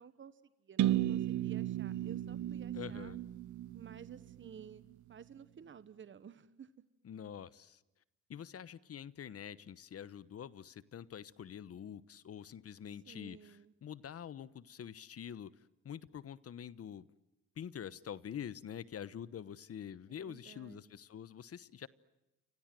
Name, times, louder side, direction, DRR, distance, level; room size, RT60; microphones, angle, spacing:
voice 1, 0.0-3.1 3.7-4.8 5.1-6.7 13.1-13.7 20.2-20.8, right 7 dB, 40° right, 14 dB, 1.3 m, -54 dB
sound 1, 0.8-4.6, right 13 dB, 75° right, 0.9 m, -35 dB
voice 2, 2.7-3.2 7.0-7.8 8.3-17.1 17.6-21.9, left 9 dB, 50° left, 17 dB, 1.2 m, -46 dB
30.0 x 25.5 x 7.7 m, 0.94 s
cardioid pair, 90°, 30 cm